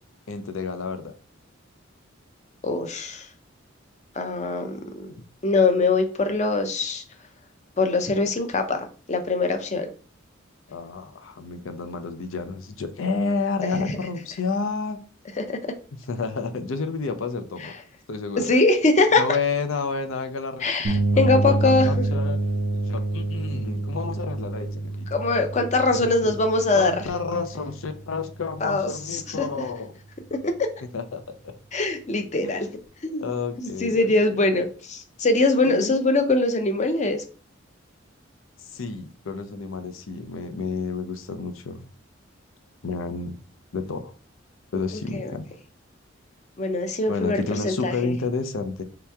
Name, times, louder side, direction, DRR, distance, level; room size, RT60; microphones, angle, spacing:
voice 1, 0.3-1.1 10.7-15.0 16.1-17.7 18.1-18.5 19.2-20.7 21.1-22.4 22.8-25.0 25.9-26.3 26.7-29.9 30.9-31.5 32.4-32.7 33.2-34.6 35.7-36.0 38.6-41.8 42.8-43.4 43.7-44.1 44.7-45.4 47.1-48.8, left 4 dB, 85° left, 8 dB, 0.6 m, -30 dB
voice 2, 2.6-3.3 4.2-5.1 5.4-7.0 7.8-9.9 13.8-13.9 15.4-15.6 17.6-17.7 18.4-19.2 20.6-21.9 25.1-27.0 28.6-29.5 30.4-30.7 31.7-32.7 33.0-33.3 33.8-37.2 45.1-45.3 46.6-48.1, left 3 dB, 35° left, 6 dB, 0.6 m, -22 dB
sound 1, 20.8-28.6, right 2 dB, 80° right, 0.7 m, -27 dB
3.4 x 3.0 x 3.4 m, 0.39 s
head